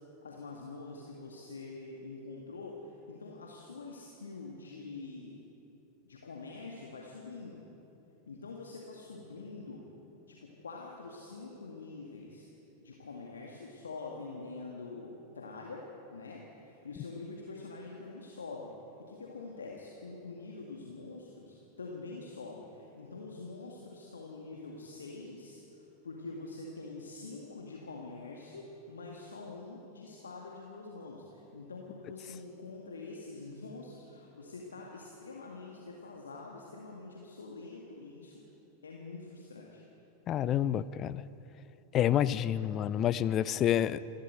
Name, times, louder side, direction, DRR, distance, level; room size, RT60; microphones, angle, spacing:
voice 1, 0.2-5.4 6.1-7.6 8.3-9.9 10.3-12.5 12.8-18.7 19.0-38.5 38.8-39.8, left 3 dB, 70° left, -1 dB, 2.1 m, -45 dB
voice 2, 40.3-41.2 41.9-44.0, left 11 dB, 30° left, 16 dB, 0.6 m, -28 dB
27.0 x 13.0 x 7.9 m, 3.0 s
figure-of-eight pair, 90°, 0 cm